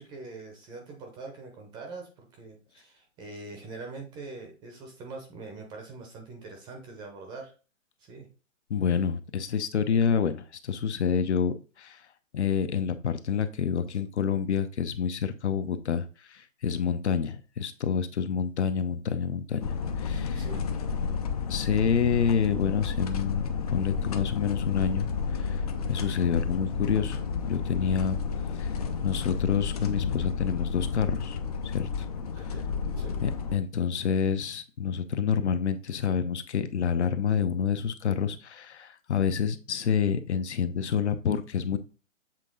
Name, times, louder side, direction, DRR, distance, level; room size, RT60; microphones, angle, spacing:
voice 1, 0.0-7.5 8.0-8.3 13.9-14.0 20.3-20.7 32.4-32.6 33.0-33.1, right 3 dB, 10° right, 2 dB, 0.7 m, -43 dB
voice 2, 8.7-12.1 12.3-20.5 21.5-28.2 28.6-28.7 29.0-32.1 33.2-41.8, left 7 dB, 60° left, 10 dB, 0.8 m, -28 dB
sound 1, 19.6-33.6, left 5 dB, 30° left, 0.5 m, -31 dB
7.5 x 3.6 x 3.8 m, 0.35 s
hypercardioid pair, 145°, 39 cm